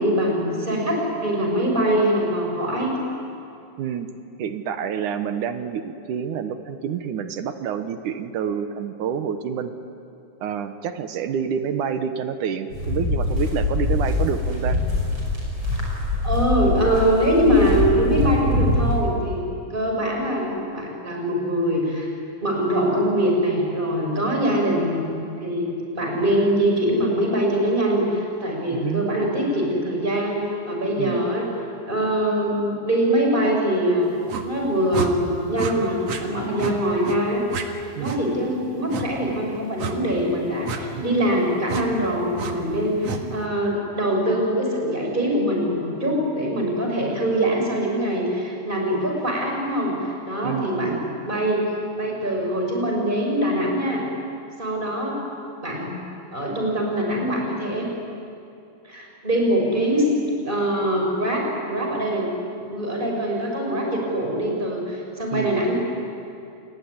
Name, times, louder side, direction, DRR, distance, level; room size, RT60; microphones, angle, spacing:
voice 1, 0.0-3.0 16.2-19.4 19.7-22.1 22.4-30.4 30.7-31.5 31.8-34.1 34.4-37.4 37.9-51.6 52.0-54.0 54.6-55.2 55.6-57.9 58.8-60.0 60.4-62.3 62.7-65.8, right 1 dB, 15° right, 0 dB, 6.1 m, -23 dB
voice 2, 3.8-4.1 4.4-9.7 10.4-14.8 28.7-29.1 31.0-31.3 38.0-38.3 40.9-41.3 43.1-43.4 50.4-51.1 65.3-65.6, right 8 dB, 70° right, 9 dB, 2.5 m, -28 dB
sound 1, 12.7-19.0, left 2 dB, 35° right, 6.8 m, -23 dB
sound 2, 34.3-34.5 34.9-35.1 35.5-35.7 36.1-36.2 36.6-36.8 37.0-37.2 37.5-37.7 38.0-38.2 38.9-39.1 39.8-40.0 40.6-40.8 41.7-41.9 42.4-42.5 43.0-43.2, right 5 dB, 55° right, 2.5 m, -29 dB
28.5 x 21.0 x 9.7 m, 2.6 s
omnidirectional pair, 3.9 m